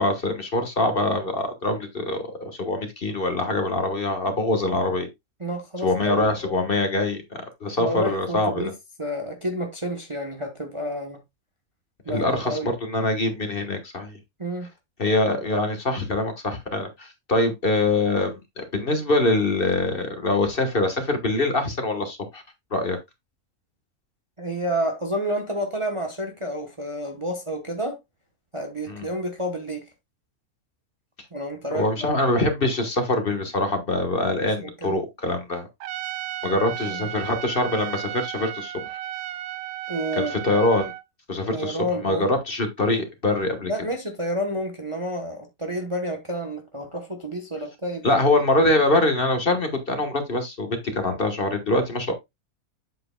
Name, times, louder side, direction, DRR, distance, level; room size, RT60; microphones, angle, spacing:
voice 1, 0.0-5.1 5.8-8.7 12.1-14.2 15.0-22.4 22.7-23.0 28.9-29.1 31.7-35.7 36.4-39.0 40.2-40.9 41.3-43.7 48.0-52.1, left 2 dB, 40° left, 1.5 m, -24 dB
voice 2, 5.4-6.3 7.8-8.7 9.0-11.2 12.1-12.7 14.4-14.7 24.4-28.0 28.5-29.8 31.3-32.2 34.3-35.0 36.9-37.1 39.9-40.3 41.5-42.3 43.7-48.2, equal, 25° right, 1.0 m, -30 dB
Trumpet, 35.8-41.0, right 14 dB, 80° right, 1.1 m, -34 dB
8.0 x 7.8 x 2.2 m
omnidirectional pair, 1.5 m